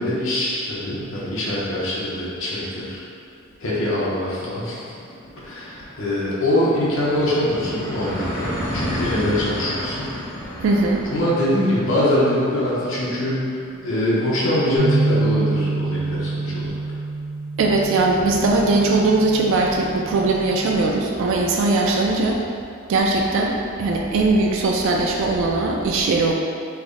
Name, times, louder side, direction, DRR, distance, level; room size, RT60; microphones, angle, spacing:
voice 1, 0.0-3.1 3.6-4.8 5.4-10.1 11.0-16.7, left 1 dB, 70° left, -7 dB, 0.8 m, -23 dB
sound 1, 3.4-3.5 3.7-15.2, equal, 15° left, 0.6 m, -33 dB
voice 2, 10.6-11.0 17.6-22.4 22.9-26.3, right 3 dB, 65° right, -1 dB, 0.3 m, -20 dB
sound 2, 14.8-21.0, right 3 dB, 45° right, 0.7 m, -26 dB
3.3 x 2.1 x 3.6 m, 2.4 s
head